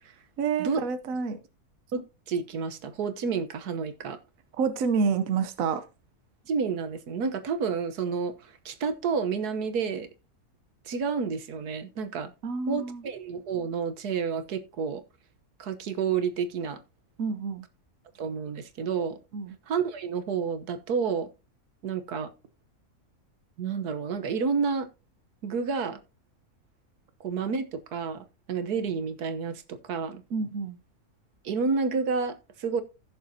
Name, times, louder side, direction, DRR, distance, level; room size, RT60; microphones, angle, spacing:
voice 1, 0.4-1.4 4.6-5.8 12.4-13.0 17.2-17.7 19.3-19.6 30.3-30.8, right 5 dB, 65° right, 1.3 m, -28 dB
voice 2, 1.9-4.2 6.5-10.1 10.8-12.3 12.7-15.0 15.6-16.8 18.2-19.2 19.7-21.3 21.8-22.3 23.6-24.9 25.4-26.0 27.2-30.2 31.4-32.8, right 5 dB, 85° right, 1.6 m, -30 dB
15.5 x 7.0 x 2.8 m
omnidirectional pair, 1.6 m